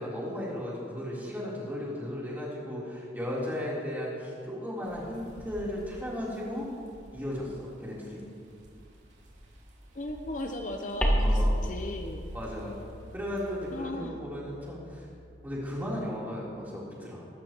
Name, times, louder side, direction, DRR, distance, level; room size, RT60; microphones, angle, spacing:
voice 1, 0.0-6.7 7.1-8.3 11.2-11.6 12.3-12.8 13.1-15.1 15.4-17.2, left 1 dB, 10° right, -6 dB, 3.6 m, -35 dB
sound 1, 4.8-13.8, equal, 85° right, 2.8 m, -53 dB
voice 2, 9.9-12.3 13.7-14.2, left 1 dB, 45° left, 4 dB, 0.7 m, -37 dB
sound 2, 11.0-15.8, equal, 5° left, 1.6 m, -31 dB
24.0 x 13.0 x 3.0 m, 2.3 s
head